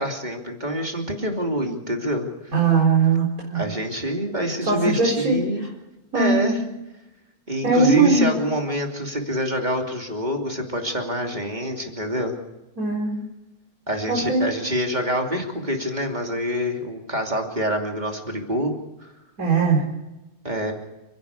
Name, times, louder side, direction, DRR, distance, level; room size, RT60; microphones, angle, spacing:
voice 1, 0.0-2.5 3.5-5.6 6.1-6.6 7.5-12.4 13.9-18.7 19.0-19.1 20.4-20.7, equal, 30° right, 2 dB, 3.0 m, -26 dB
voice 2, 2.5-3.6 4.7-5.4 6.1-6.5 7.6-8.3 12.8-13.2 14.1-14.5 19.4-19.8, right 4 dB, 70° right, -2 dB, 4.6 m, -20 dB
30.0 x 11.5 x 8.4 m, 1.0 s
omnidirectional pair, 1.6 m